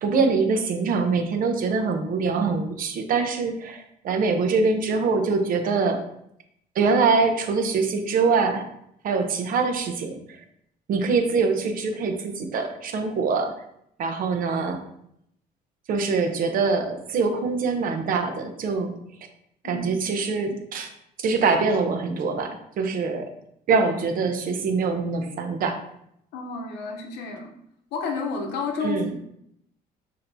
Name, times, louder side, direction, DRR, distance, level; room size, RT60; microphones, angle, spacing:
voice 1, 0.0-6.0 6.7-8.6 9.0-10.4 10.9-13.5 14.0-14.8 15.9-18.9 19.6-20.9 21.2-23.3 23.7-25.8 28.8-29.1, right 4 dB, 55° right, 5 dB, 0.7 m, -24 dB
voice 2, 19.6-19.9 26.3-27.5 27.9-29.1, left 4 dB, 80° left, 4 dB, 0.8 m, -30 dB
6.2 x 2.8 x 2.6 m, 0.74 s
cardioid pair, 110°, 17 cm